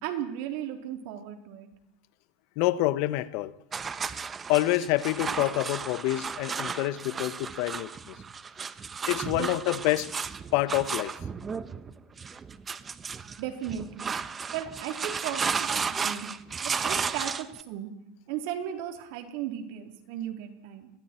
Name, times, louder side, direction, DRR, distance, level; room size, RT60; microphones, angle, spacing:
voice 1, 0.0-1.7 9.4-9.5 13.4-14.1 14.5-16.3 16.6-17.9 18.3-20.9, right 10 dB, 65° right, 3.6 m, -36 dB
voice 2, 2.6-3.5 4.5-8.2 9.1-10.1 10.5-11.1, left 16 dB, 65° left, 1.1 m, -27 dB
sound 1, 3.7-17.6, right 5 dB, 25° right, 1.1 m, -34 dB
29.5 x 22.5 x 4.6 m
supercardioid pair, 120°, 0 cm